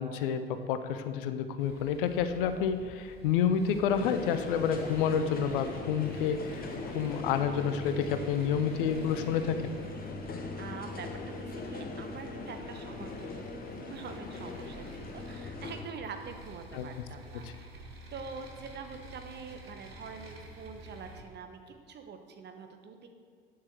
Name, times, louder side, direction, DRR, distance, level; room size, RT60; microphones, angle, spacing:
voice 1, 0.0-9.8 16.7-16.9 17.4-17.5, left 7 dB, 65° left, 10 dB, 0.7 m, -29 dB
sound 1, 1.6-21.2, right 2 dB, 85° right, 1.2 m, -50 dB
sound 2, 3.9-15.8, left 3 dB, 30° left, 1.3 m, -40 dB
voice 2, 10.3-23.1, right 5 dB, 35° right, 6 dB, 1.1 m, -45 dB
8.6 x 7.3 x 6.2 m, 2.1 s
figure-of-eight pair, 65°, 30 cm